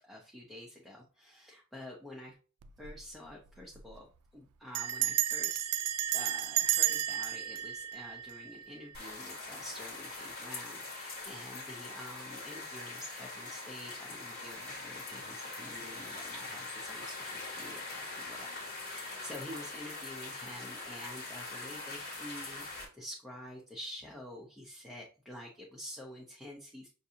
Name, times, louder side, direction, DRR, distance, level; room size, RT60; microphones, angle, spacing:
voice 1, 0.0-2.3 2.8-4.1 4.3-18.5 18.7-26.9, left 1 dB, ahead, -4 dB, 0.6 m, -48 dB
Bell, 2.6-3.0 3.3-3.4 3.6-4.0 4.7-8.8, right 12 dB, 85° right, 0.3 m, -32 dB
sound 1, 8.9-22.8, left 3 dB, 45° left, 1.4 m, -43 dB
5.9 x 2.5 x 2.7 m, 0.37 s
head